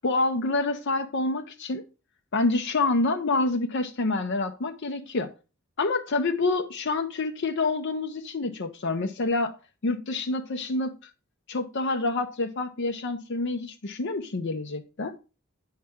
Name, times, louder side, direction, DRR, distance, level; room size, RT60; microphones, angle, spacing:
voice 1, 0.0-1.8 2.3-5.3 5.8-9.5 9.8-10.9 11.5-15.1, left 3 dB, 60° left, 5 dB, 0.7 m, -27 dB
8.7 x 5.8 x 3.5 m, 0.30 s
head